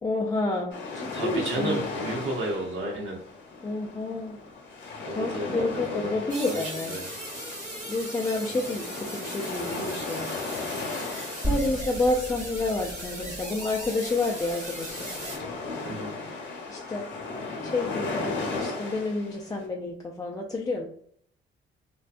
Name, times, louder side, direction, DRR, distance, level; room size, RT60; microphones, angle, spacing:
voice 1, 0.0-1.9 3.6-4.4 5.1-7.0 7.9-10.4 11.0-15.1 16.7-17.1 17.6-20.8, left 2 dB, 20° left, -1 dB, 0.3 m, -29 dB
sound 1, 0.7-19.6, left 3 dB, 70° left, 0.8 m, -37 dB
voice 2, 1.1-3.2 5.0-7.1 15.9-16.1, right 1 dB, 90° right, 0 dB, 0.9 m, -32 dB
sound 2, 6.3-15.4, right 1 dB, 40° right, 1.0 m, -38 dB
sound 3, 11.4-15.7, right 2 dB, 15° right, 1.0 m, -36 dB
2.5 x 2.2 x 2.4 m, 0.63 s
cardioid pair, 90°, 20 cm